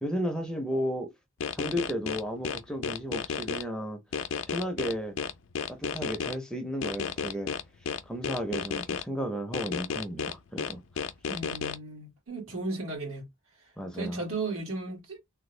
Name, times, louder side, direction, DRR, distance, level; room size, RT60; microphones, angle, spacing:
voice 1, 0.0-1.1 1.5-4.0 4.5-5.2 5.7-7.5 8.1-10.8 13.8-14.2, equal, 5° left, 0.5 m, -33 dB
sound 1, 1.4-3.6 4.1-6.3 6.8-9.0 9.5-11.8, left 6 dB, 65° left, 0.4 m, -32 dB
voice 2, 11.3-13.3 13.9-15.2, right 3 dB, 75° right, 1.7 m, -35 dB
3.4 x 2.2 x 3.1 m
head